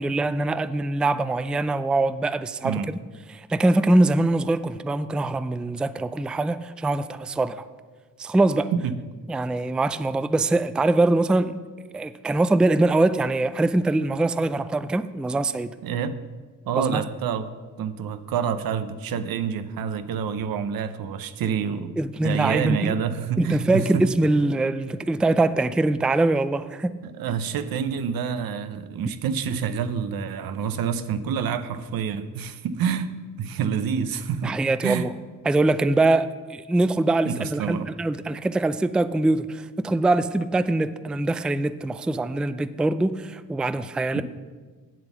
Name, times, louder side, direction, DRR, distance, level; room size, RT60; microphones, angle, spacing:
voice 1, 0.0-3.0 3.3-7.6 8.2-8.7 9.3-11.6 11.9-15.7 16.7-17.0 22.0-22.9 23.4-26.9 34.4-35.1 35.4-44.2, right 2 dB, 5° right, 12 dB, 0.3 m, -23 dB
voice 2, 15.8-16.2 16.7-17.5 17.8-22.0 22.2-24.1 27.0-35.1 37.2-37.9 44.1-44.2, right 7 dB, 75° right, 11 dB, 0.8 m, -27 dB
8.0 x 7.5 x 7.1 m, 1.4 s
cardioid pair, 85°, 35 cm